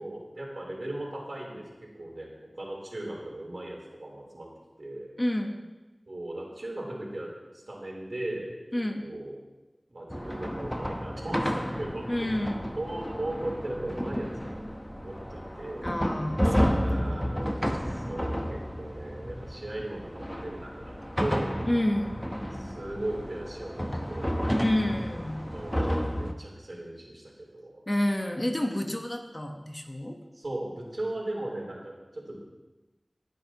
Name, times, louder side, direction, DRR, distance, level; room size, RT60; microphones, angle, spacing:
voice 1, 0.0-2.3 2.6-4.5 4.8-5.1 6.1-7.3 7.7-8.5 9.0-9.4 9.9-12.3 12.8-14.7 15.0-16.0 16.8-17.6 17.9-21.6 22.5-24.5 25.5-27.8 30.3-32.4, right 1 dB, 65° right, -3 dB, 3.8 m, -37 dB
voice 2, 5.2-5.6 8.7-9.0 12.1-12.7 15.8-17.3 21.7-22.1 24.6-25.5 27.9-30.2, left 1 dB, 30° left, 3 dB, 1.3 m, -29 dB
sound 1, 10.1-26.3, equal, 5° left, 1.0 m, -31 dB
19.5 x 10.5 x 3.0 m, 1.1 s
wide cardioid pair, 45°, 0 cm